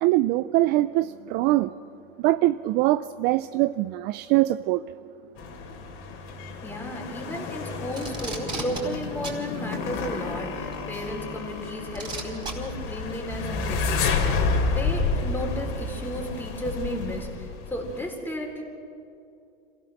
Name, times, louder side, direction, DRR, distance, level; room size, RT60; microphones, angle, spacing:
voice 1, 0.0-1.7 2.2-4.8, right 17 dB, 35° right, 0.4 m, -23 dB
sound 1, 5.4-18.1, left 4 dB, 45° left, 3.3 m, -30 dB
voice 2, 6.6-18.6, equal, 5° left, 4.1 m, -34 dB
Packing tape duct tape, 7.9-8.8 9.2-9.4 10.7-10.8 11.9-12.5 13.6-13.7, right 3 dB, 15° right, 4.7 m, -33 dB
27.0 x 16.5 x 6.5 m
hypercardioid pair, 125°, 30 cm